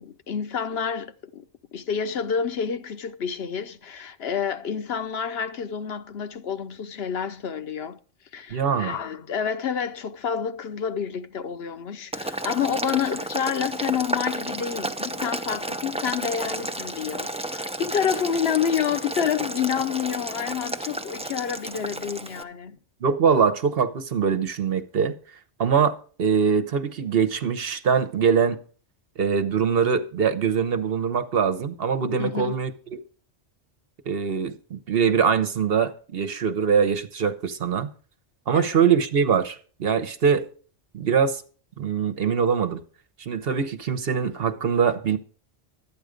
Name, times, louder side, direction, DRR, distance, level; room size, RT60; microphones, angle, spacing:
voice 1, 0.0-1.4 1.7-8.0 8.3-22.8 32.2-32.5 38.5-38.7, left 7 dB, 70° left, 1.0 m, -28 dB
voice 2, 8.5-9.0 23.0-25.1 25.6-28.6 29.2-33.0 34.1-37.9 38.5-40.4 40.9-41.4 41.8-42.8 43.2-45.2, right 6 dB, 60° right, 1.1 m, -23 dB
Boiling, 12.1-22.4, right 1 dB, 10° right, 0.4 m, -32 dB
12.0 x 8.8 x 5.1 m
omnidirectional pair, 1.1 m